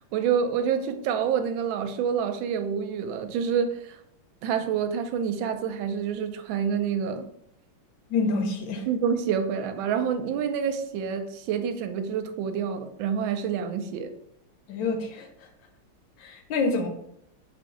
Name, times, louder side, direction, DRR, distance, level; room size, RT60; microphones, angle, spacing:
voice 1, 0.1-4.0 4.4-7.3 8.9-14.1, right 7 dB, 75° right, 1.3 m, -27 dB
voice 2, 8.1-8.8 14.7-15.3 16.2-16.9, left 3 dB, 75° left, 1.3 m, -27 dB
3.9 x 2.6 x 4.7 m
omnidirectional pair, 2.2 m